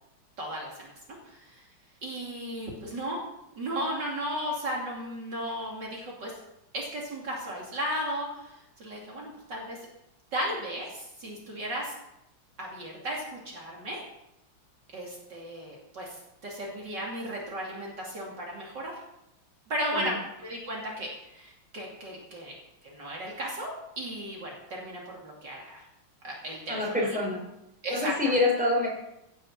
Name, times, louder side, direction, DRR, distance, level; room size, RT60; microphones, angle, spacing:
voice 1, 0.4-0.9 1.2-1.7 2.0-3.2 3.5-6.3 6.7-9.8 10.3-11.9 12.6-14.0 14.9-16.2 16.4-18.9 19.7-22.5 22.8-25.8 26.2-27.2 27.8-28.1, equal, 55° right, -3 dB, 3.4 m, -35 dB
voice 2, 26.7-27.4 27.9-28.9, left 2 dB, 5° right, -3 dB, 4.9 m, -26 dB
16.0 x 7.7 x 7.3 m, 0.87 s
omnidirectional pair, 2.2 m